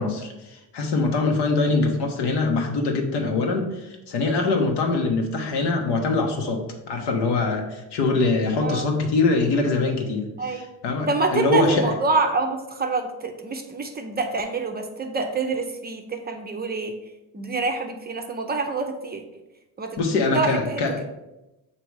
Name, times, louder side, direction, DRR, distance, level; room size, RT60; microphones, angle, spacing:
voice 1, 0.0-11.9 20.0-21.0, left 3 dB, 75° left, 3 dB, 1.2 m, -23 dB
voice 2, 8.6-8.9 10.4-10.7 11.1-17.0 17.3-19.2 19.8-20.0 20.3-20.8, right 3 dB, 25° right, 4 dB, 0.5 m, -26 dB
6.9 x 2.9 x 4.7 m, 0.97 s
cardioid pair, 120°, 42 cm